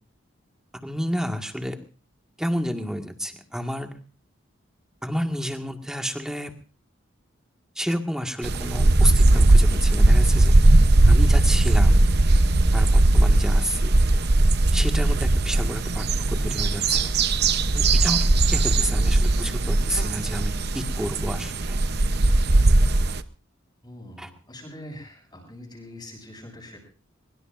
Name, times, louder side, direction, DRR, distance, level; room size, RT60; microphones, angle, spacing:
voice 1, 0.7-1.8 2.4-3.9 5.0-6.5 7.8-10.5 11.1-12.2 12.7-12.9 13.1-14.0 14.7-16.0 16.4-17.1 17.7-18.2 18.5-21.8 24.2-24.3, equal, 5° right, 4 dB, 1.7 m, -30 dB
sound 1, 8.4-23.2, right 2 dB, 50° right, 0.8 m, -19 dB
voice 2, 23.8-26.8, left 1 dB, 20° left, 1 dB, 7.0 m, -43 dB
23.5 x 22.0 x 2.6 m, 0.37 s
head